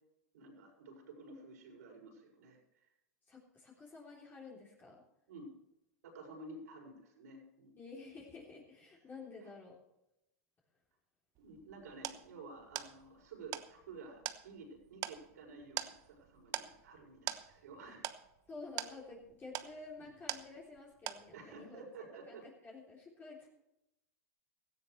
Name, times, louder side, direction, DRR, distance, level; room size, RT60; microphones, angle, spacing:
voice 1, 0.3-2.9 5.3-5.5 6.0-7.7 9.4-9.5 11.4-18.0 20.0-20.1 21.3-22.5, right 3 dB, 75° right, 0 dB, 6.4 m, -52 dB
voice 2, 3.3-5.0 7.8-9.8 17.9-18.0 18.5-21.8 22.3-23.5, left 3 dB, 20° left, -3 dB, 3.5 m, -51 dB
sound 1, 11.4-20.8 21.1-21.6, right 14 dB, 45° right, 1.0 m, -44 dB
17.0 x 15.0 x 3.3 m, 0.88 s
hypercardioid pair, 105°, 9 cm